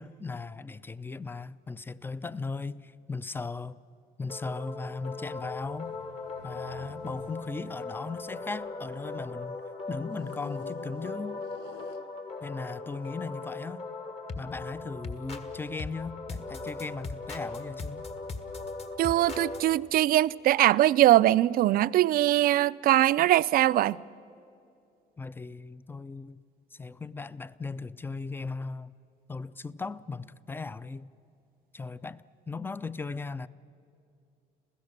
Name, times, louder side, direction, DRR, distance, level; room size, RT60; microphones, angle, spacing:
voice 1, 0.0-3.8 4.2-5.9 6.4-11.4 12.4-13.9 14.4-18.1 25.2-26.4 26.7-28.9 29.3-31.1 31.7-33.5, left 4 dB, 15° left, 0.5 m, -38 dB
sound 1, 4.3-19.6, left 3 dB, 40° left, 1.7 m, -39 dB
sound 2, 4.6-9.3 10.0-12.6 13.2-13.4, left 7 dB, 80° left, 1.0 m, -51 dB
voice 2, 19.0-24.0, right 14 dB, 60° right, 0.4 m, -22 dB
27.0 x 16.0 x 6.7 m
cardioid pair, 110°, 17 cm